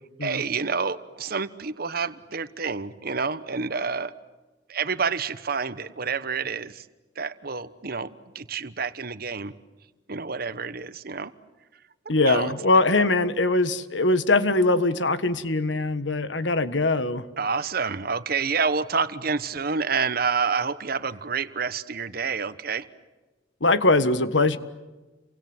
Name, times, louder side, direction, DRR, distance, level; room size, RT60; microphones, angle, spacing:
voice 1, 0.2-4.1 4.7-6.8 7.2-9.5 10.1-11.3 12.2-12.5 17.4-22.9, right 5 dB, 55° right, 13 dB, 1.2 m, -28 dB
voice 2, 12.1-17.2 23.6-24.6, left 2 dB, 85° left, 12 dB, 1.5 m, -22 dB
30.0 x 24.5 x 8.0 m, 1.2 s
head